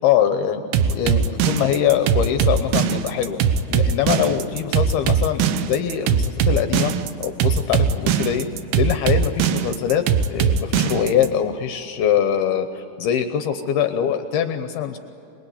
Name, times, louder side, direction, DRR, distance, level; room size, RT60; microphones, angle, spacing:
voice 1, 0.0-3.4 3.7-6.9 7.2-8.5 8.7-10.0 10.3-15.0, left 9 dB, 75° left, 8 dB, 2.4 m, -23 dB
sound 1, 0.7-11.3, right 7 dB, 75° right, 2.8 m, -20 dB
27.5 x 21.5 x 8.4 m, 2.9 s
omnidirectional pair, 5.3 m